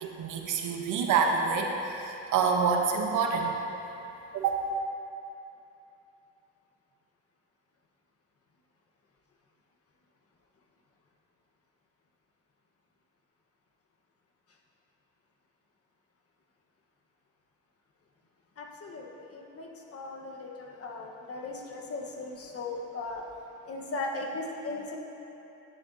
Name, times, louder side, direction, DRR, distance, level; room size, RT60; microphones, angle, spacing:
voice 1, 0.0-3.6 4.3-4.6, right 5 dB, 85° right, 2 dB, 1.0 m, -27 dB
voice 2, 18.6-23.3 23.6-25.0, left 2 dB, 50° left, 0 dB, 1.2 m, -38 dB
11.0 x 9.9 x 2.7 m, 2.9 s
cardioid pair, 90°, 30 cm